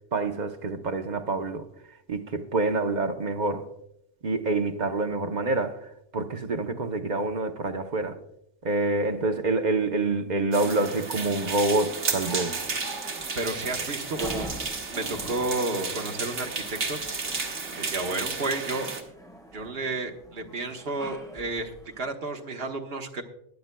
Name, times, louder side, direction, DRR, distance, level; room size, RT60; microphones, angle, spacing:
voice 1, 0.1-1.7 2.1-3.7 4.2-5.8 6.1-8.2 8.6-12.5, right 3 dB, 45° right, 0.9 m, -27 dB
sound 1, 10.5-19.0, right 4 dB, 75° right, 1.7 m, -33 dB
sound 2, 11.1-22.1, equal, 5° left, 1.6 m, -46 dB
voice 2, 13.3-14.5 14.9-17.0 17.8-18.9 19.5-21.7 22.0-23.2, right 2 dB, 60° right, 1.3 m, -31 dB
20.0 x 10.5 x 2.2 m
omnidirectional pair, 1.2 m